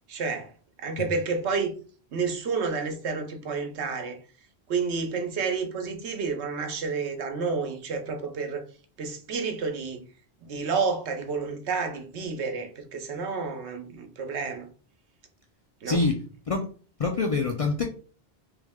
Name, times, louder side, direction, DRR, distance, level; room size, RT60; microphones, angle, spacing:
voice 1, 0.1-0.5 0.8-1.7 2.1-4.2 4.7-8.6 9.0-10.0 10.4-14.7 15.8-16.0, right 4 dB, 85° right, 1.0 m, -30 dB
voice 2, 15.8-16.7 17.0-17.9, left 3 dB, 55° left, 0.4 m, -26 dB
3.3 x 3.1 x 3.5 m
omnidirectional pair, 1.1 m